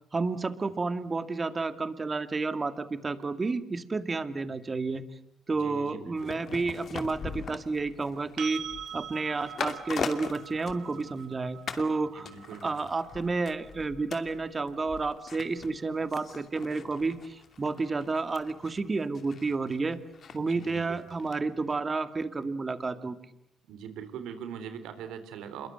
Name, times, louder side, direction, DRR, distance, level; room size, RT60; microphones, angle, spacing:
voice 1, 0.1-5.0 5.5-8.6 8.9-12.3 12.6-20.0 20.3-23.2, right 3 dB, 30° right, 11 dB, 2.3 m, -31 dB
voice 2, 5.5-6.4 12.1-12.9 20.3-21.1 23.6-25.7, right 8 dB, 90° right, 11 dB, 3.6 m, -42 dB
sound 1, 6.2-11.3 11.7-11.9 12.3-21.4 21.7-21.8, left 6 dB, 55° left, 2.6 m, -41 dB
sound 2, 8.4-16.2 19.0-19.1, right 9 dB, 75° right, 1.5 m, -45 dB
27.5 x 22.5 x 7.9 m, 0.75 s
cardioid pair, 90°, 0 cm